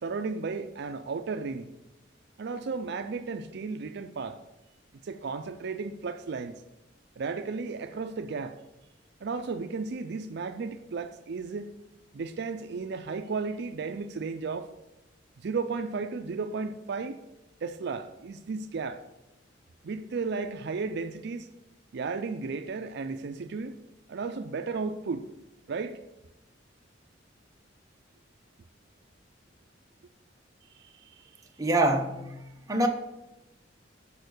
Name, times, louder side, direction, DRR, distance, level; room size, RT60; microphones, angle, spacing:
voice 1, 0.0-1.7 2.4-4.4 5.0-6.6 7.2-8.6 9.2-11.7 12.1-14.7 15.4-17.2 17.6-19.0 19.8-21.5 21.9-23.8 24.1-25.2 25.7-26.0 30.7-31.4, right 4 dB, 60° right, 0.4 m, -34 dB
voice 2, 31.6-32.3 32.7-32.9, right 1 dB, 20° right, 0.9 m, -24 dB
6.7 x 5.2 x 6.5 m
head